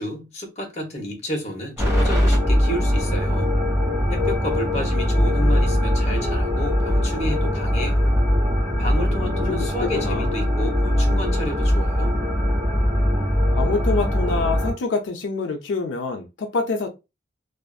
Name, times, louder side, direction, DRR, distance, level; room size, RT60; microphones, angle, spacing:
voice 1, 0.0-3.5 4.1-8.1 8.8-12.2, equal, 40° left, 0.9 m, -31 dB
sound 1, 1.8-14.7, equal, 15° right, 1.2 m, -21 dB
voice 2, 9.3-10.3 13.5-16.9, left 4 dB, 90° left, 0.4 m, -26 dB
2.5 x 2.4 x 2.3 m
head